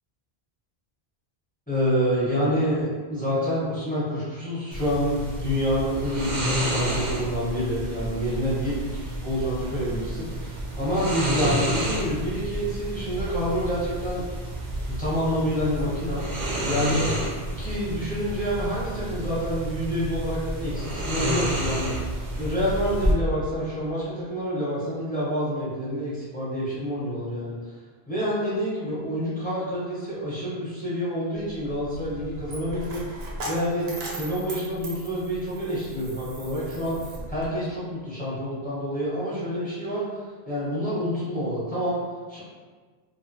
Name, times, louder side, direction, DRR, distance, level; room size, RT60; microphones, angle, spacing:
voice 1, 1.7-14.2 15.0-17.2 17.6-27.7 28.1-33.0 33.5-37.0 37.3-42.0 42.3-42.4, equal, 10° left, -10 dB, 0.7 m, -28 dB
sound 1, 4.7-23.1, right 1 dB, 55° right, 0.5 m, -30 dB
Coin (dropping), 31.4-37.5, right 1 dB, 85° right, 0.8 m, -38 dB
2.5 x 2.0 x 2.6 m, 1.4 s
omnidirectional pair, 1.0 m